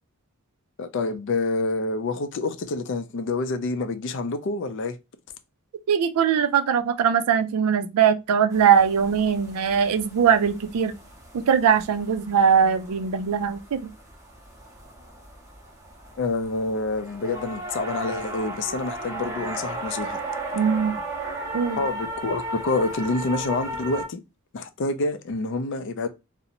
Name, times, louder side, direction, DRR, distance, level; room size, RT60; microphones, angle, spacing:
voice 1, 0.8-5.0 16.2-20.2 21.8-24.2 24.5-26.1, left 3 dB, 55° left, 0.4 m, -27 dB
voice 2, 5.9-10.9 11.3-13.9 20.5-21.0 21.5-21.8, right 7 dB, 85° right, 0.4 m, -21 dB
sound 1, 8.5-24.1, right 1 dB, 15° right, 0.6 m, -36 dB
2.5 x 2.0 x 2.8 m
head